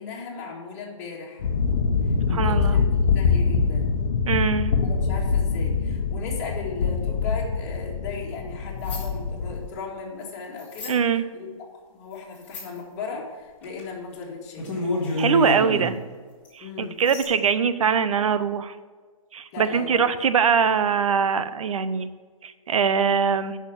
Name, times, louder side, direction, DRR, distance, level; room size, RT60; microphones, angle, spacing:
voice 1, 0.0-1.5 2.1-4.0 4.8-11.0 11.3-11.5 11.9-14.9 16.6-17.0 19.5-20.1, left 4 dB, 30° left, -2 dB, 2.0 m, -36 dB
sound 1, 1.4-9.7, left 5 dB, 65° left, 1.0 m, -24 dB
voice 2, 2.3-2.7 4.3-4.7 10.9-11.3 15.2-16.0 16.5-18.7 19.3-22.1 22.4-23.6, right 6 dB, 70° right, 13 dB, 0.7 m, -22 dB
sound 2, 8.8-9.1 10.6-10.9 12.4-12.8 13.6-13.9 14.1-14.2 14.6-15.9 16.4-16.5 17.0-17.2, left 2 dB, 10° left, 1.9 m, -28 dB
9.0 x 5.9 x 7.2 m, 1.5 s
hypercardioid pair, 165°, 18 cm